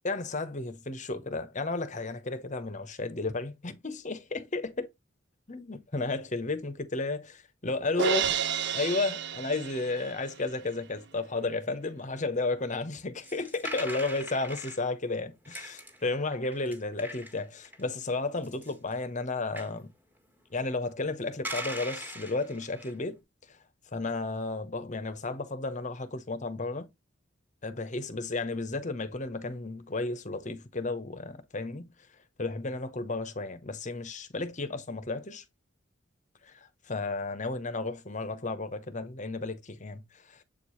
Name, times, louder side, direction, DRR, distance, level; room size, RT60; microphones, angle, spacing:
voice 1, 0.0-4.9 5.5-8.3 8.7-19.9 20.5-23.2 23.5-23.6 23.9-26.9 27.6-31.9 32.4-35.4 36.4-40.4, left 3 dB, 40° left, 1.0 m, -33 dB
Crash cymbal, 8.0-10.3, right 7 dB, 60° right, 0.7 m, -30 dB
sound 1, 13.2-14.8 15.4-16.1 16.3-18.0 18.4-18.9 19.5-19.7 21.4-22.9, equal, 10° right, 1.7 m, -40 dB
7.8 x 4.6 x 3.1 m
head